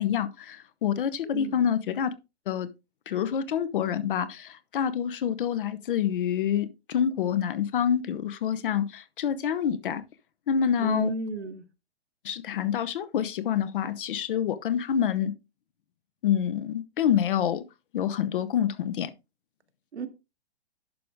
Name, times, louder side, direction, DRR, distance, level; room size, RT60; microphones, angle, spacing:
voice 1, 0.0-2.1 2.5-2.7 3.1-10.0 10.5-11.1 12.2-15.3 16.2-17.6 17.9-19.1, left 9 dB, 55° left, 0.9 m, -27 dB
voice 2, 10.8-11.6 19.9-20.1, right 4 dB, 80° right, 1.4 m, -33 dB
11.0 x 5.1 x 3.5 m
hypercardioid pair, 135°, 33 cm